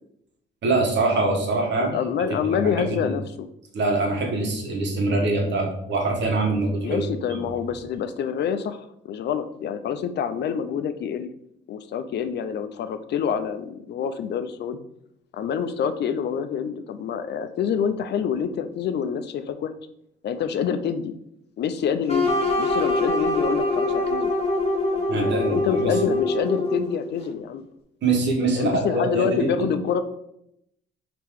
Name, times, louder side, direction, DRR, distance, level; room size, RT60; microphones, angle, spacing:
voice 1, 0.6-2.0 2.4-3.1 3.7-7.0 7.3-7.4 25.1-26.0 28.0-29.7, right 2 dB, 65° right, 1 dB, 1.2 m, -24 dB
voice 2, 1.7-3.5 6.8-11.3 11.7-14.8 15.3-19.7 20.2-21.1 21.6-24.3 25.1-27.6 28.5-30.0, left 7 dB, 60° left, 10 dB, 0.5 m, -27 dB
sound 1, 22.1-27.0, left 2 dB, 30° left, 1.1 m, -24 dB
3.5 x 2.9 x 4.6 m, 0.77 s
cardioid pair, 90°, 20 cm